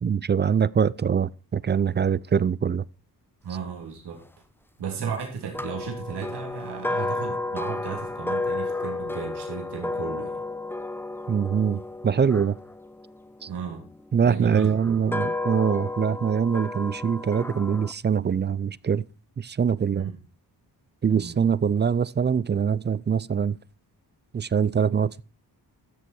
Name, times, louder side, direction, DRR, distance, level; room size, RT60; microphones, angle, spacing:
voice 1, 0.0-2.8 5.0-5.1 11.3-12.6 13.4-13.5 14.1-19.1 19.4-20.1 21.0-23.6 24.3-25.2, right 7 dB, 30° right, 0.4 m, -23 dB
voice 2, 3.4-4.2 4.8-10.4 13.5-13.8 14.2-15.0 19.9-20.1 21.1-21.4, right 6 dB, 85° right, 3.1 m, -35 dB
sound 1, 5.5-13.7 14.4-17.9, left 2 dB, 5° left, 0.7 m, -32 dB
13.5 x 6.8 x 4.5 m
cardioid pair, 80°, 39 cm